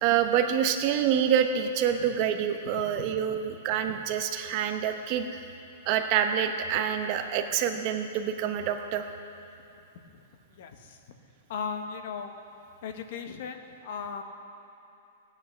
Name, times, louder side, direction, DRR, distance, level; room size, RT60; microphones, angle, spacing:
voice 1, 0.0-5.4 5.9-9.1, right 8 dB, 30° right, 6 dB, 0.9 m, -27 dB
voice 2, 10.5-11.0 11.5-12.3 12.8-14.2, left 6 dB, 45° left, 6 dB, 1.1 m, -37 dB
17.0 x 9.9 x 6.4 m, 2.8 s
supercardioid pair, 175°, 0 cm